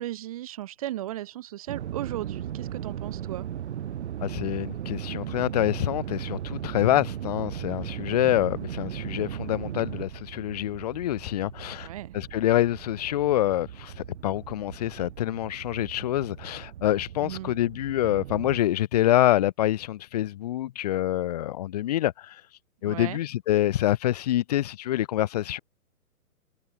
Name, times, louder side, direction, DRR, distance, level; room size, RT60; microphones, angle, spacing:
voice 1, 0.0-3.5 11.8-12.1 17.2-17.6 22.8-23.2, right 14 dB, 25° right, 0.9 m, -36 dB
sound 1, 1.7-18.6, right 10 dB, 50° right, 7.1 m, -37 dB
voice 2, 4.2-11.9 12.1-22.4 22.8-25.6, left 13 dB, 25° left, 0.9 m, -26 dB
hypercardioid pair, 160°, 44 cm